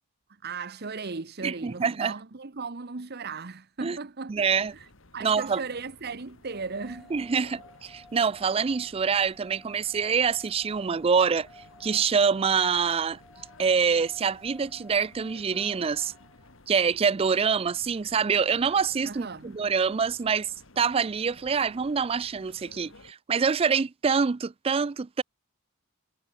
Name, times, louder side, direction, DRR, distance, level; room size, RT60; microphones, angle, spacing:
voice 1, 0.4-4.3 4.7-4.9 5.1-7.1 19.0-19.5, right 4 dB, 50° right, 1.0 m, -36 dB
voice 2, 1.4-2.1 3.8-4.0 4.3-4.7 5.2-5.6 7.1-11.5 11.8-13.2 13.6-16.1 16.7-25.2, right 6 dB, 25° right, 0.3 m, -25 dB
sound 1, 4.3-23.1, left 2 dB, 65° left, 2.4 m, -54 dB
sound 2, 6.4-16.6, equal, ahead, 3.8 m, -55 dB
head